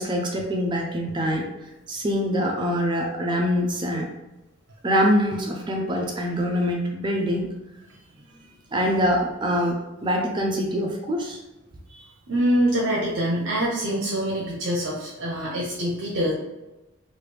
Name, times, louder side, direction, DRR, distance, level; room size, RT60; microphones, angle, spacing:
voice 1, 0.0-1.5 1.9-4.1 4.8-7.5 8.7-11.4, equal, 20° right, 1 dB, 0.4 m, -24 dB
voice 2, 11.9-16.3, equal, 65° right, -4 dB, 0.6 m, -25 dB
3.1 x 2.4 x 3.1 m, 1.0 s
head